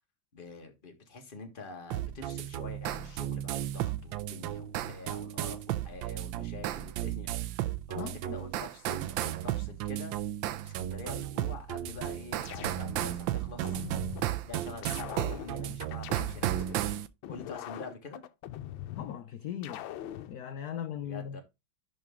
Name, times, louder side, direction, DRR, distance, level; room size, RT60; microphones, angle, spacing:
voice 1, 0.3-10.2 10.6-13.8 14.3-18.2 21.0-21.4, left 3 dB, 30° left, 1.6 m, -46 dB
sound 1, 1.9-17.1, right 13 dB, 80° right, 1.3 m, -34 dB
voice 2, 7.9-8.4 19.0-20.0 20.3-21.4, left 9 dB, 65° left, 1.1 m, -39 dB
sound 2, 11.8-13.1 13.6-14.3 14.8-16.8 17.2-19.1 19.6-20.3, left 12 dB, 85° left, 1.4 m, -42 dB
10.5 x 3.8 x 3.6 m
omnidirectional pair, 2.1 m